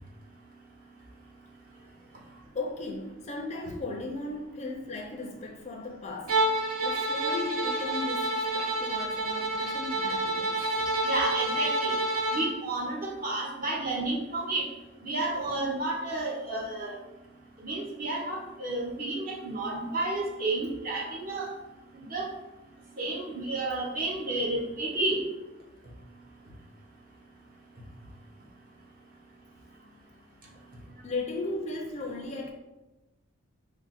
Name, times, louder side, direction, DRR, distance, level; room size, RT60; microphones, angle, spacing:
voice 1, 2.5-6.4 6.8-10.7 31.0-32.5, left 2 dB, 30° left, 1 dB, 0.4 m, -36 dB
Bowed string instrument, 6.3-12.5, right 2 dB, 90° right, 0.7 m, -28 dB
voice 2, 11.0-12.0 12.3-14.6 15.0-16.9 17.6-21.5 22.1-22.3 23.0-25.2, right 2 dB, 40° right, -2 dB, 0.8 m, -31 dB
4.6 x 2.0 x 4.1 m, 1.0 s
head